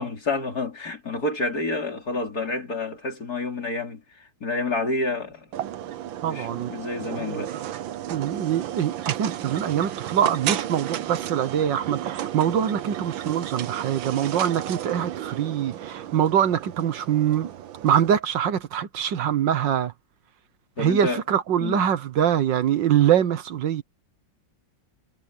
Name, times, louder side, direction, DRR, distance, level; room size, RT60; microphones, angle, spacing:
voice 1, 0.0-5.5 6.2-7.6 20.8-21.2 21.6-21.8, left 2 dB, 50° left, 4.6 m, -29 dB
sound 1, 5.5-18.2, right 11 dB, 90° right, 1.7 m, -33 dB
voice 2, 6.2-6.7 7.2-7.4 8.1-17.5 17.8-19.9 20.8-23.8, right 9 dB, 70° right, 1.7 m, -24 dB
omnidirectional pair, 2.1 m